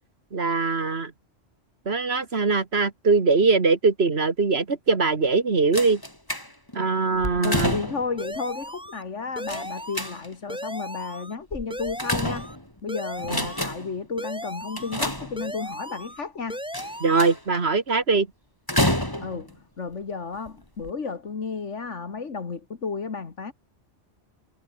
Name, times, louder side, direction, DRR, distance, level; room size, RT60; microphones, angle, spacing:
voice 1, 0.3-1.1 1.9-6.0 6.8-7.8 13.3-13.4 17.0-18.3, right 4 dB, 60° right, 2.1 m, -22 dB
sound 1, 5.7-6.8 7.2-8.2 9.5-10.5 11.5-12.8 13.2-14.0 14.8-15.7 16.7-17.6 18.7-19.5 20.3-20.5 20.8-20.9, left 1 dB, 15° left, 4.4 m, -29 dB
voice 2, 7.4-12.5 12.8-16.6 19.2-23.5, left 5 dB, 75° left, 2.2 m, -33 dB
sound 2, 8.2-9.0 9.4-10.2 10.5-11.3 11.7-12.6 12.9-13.7 14.2-15.0 15.4-16.2 16.5-17.3, equal, 5° right, 4.5 m, -36 dB
omnidirectional pair, 1.2 m